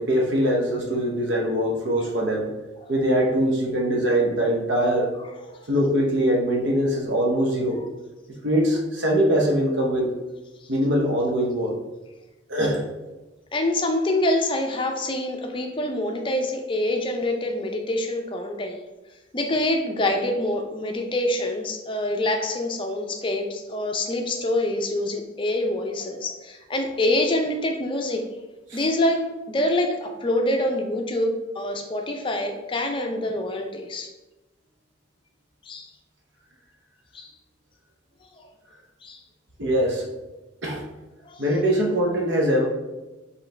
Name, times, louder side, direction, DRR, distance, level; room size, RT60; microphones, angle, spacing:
voice 1, 0.0-2.5 2.9-5.1 5.7-7.8 8.4-10.1 10.7-11.8 12.5-12.8 28.7-28.8 39.6-40.0 40.6-40.8 41.4-42.7, equal, 65° right, 0 dB, 0.8 m, -22 dB
voice 2, 13.5-18.8 19.3-28.2 28.7-34.1 35.6-35.9 37.1-37.3 38.4-38.5 39.0-39.2 41.3-41.4, left 1 dB, 25° left, 3 dB, 0.5 m, -26 dB
4.9 x 3.1 x 3.3 m, 1.1 s
head